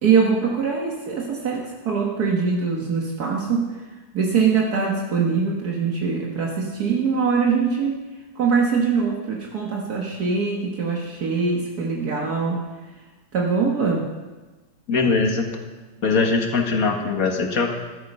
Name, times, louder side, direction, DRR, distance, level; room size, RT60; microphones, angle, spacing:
voice 1, 0.0-3.7 4.1-8.0 8.4-12.6 13.3-14.1, right 5 dB, 65° right, -1 dB, 1.9 m, -22 dB
voice 2, 14.9-15.4 16.0-17.7, left 4 dB, 55° left, 3 dB, 2.0 m, -21 dB
13.5 x 13.0 x 5.4 m, 1.3 s
omnidirectional pair, 1.8 m